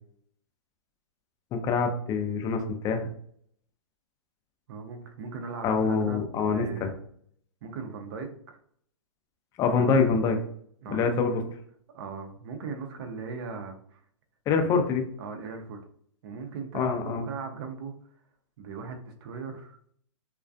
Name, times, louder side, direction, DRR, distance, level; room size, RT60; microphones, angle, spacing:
voice 1, 1.5-3.1 5.6-6.9 9.6-10.4 10.9-11.4 14.5-15.1 16.7-17.3, left 5 dB, 20° left, 4 dB, 0.4 m, -25 dB
voice 2, 4.7-7.0 7.6-8.6 9.7-10.1 10.8-11.5 11.9-14.0 14.6-15.8 16.2-17.9 18.6-19.8, right 5 dB, 50° right, 5 dB, 0.6 m, -39 dB
2.3 x 2.2 x 2.5 m, 0.62 s
hypercardioid pair, 125°, 16 cm